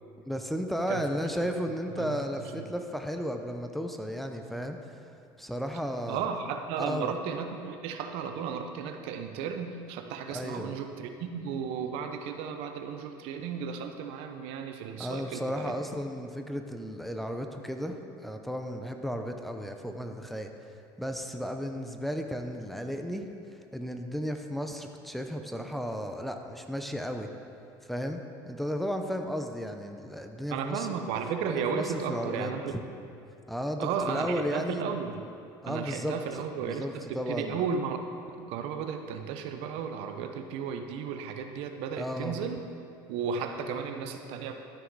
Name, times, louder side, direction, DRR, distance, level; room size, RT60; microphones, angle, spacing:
voice 1, 0.3-4.8 5.4-6.3 6.8-7.1 10.3-10.7 15.0-20.5 21.0-23.3 23.7-27.3 27.9-31.1 31.7-32.5 33.5-34.9 35.6-37.6 42.0-42.4, equal, ahead, 4 dB, 0.7 m, -34 dB
voice 2, 6.1-15.7 30.5-32.8 33.8-35.3 35.7-38.0 38.4-42.6 43.1-44.5, right 6 dB, 70° right, 6 dB, 0.8 m, -34 dB
12.5 x 6.2 x 4.8 m, 2.6 s
supercardioid pair, 105°, 10 cm